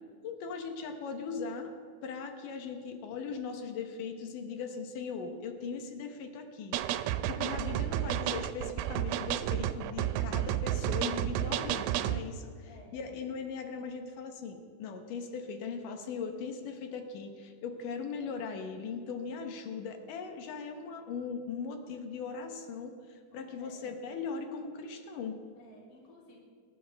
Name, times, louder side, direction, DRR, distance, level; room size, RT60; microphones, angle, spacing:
voice 1, 0.2-1.7 2.0-6.8 7.3-25.4, left 5 dB, 80° left, 5 dB, 1.9 m, -39 dB
sound 1, 6.7-12.2, right 12 dB, 90° right, 3.1 m, -31 dB
voice 2, 11.3-11.7 12.6-13.0 23.3-23.9 25.6-26.4, left 1 dB, 30° left, -3 dB, 3.2 m, -55 dB
26.5 x 12.5 x 3.5 m, 2.1 s
omnidirectional pair, 5.4 m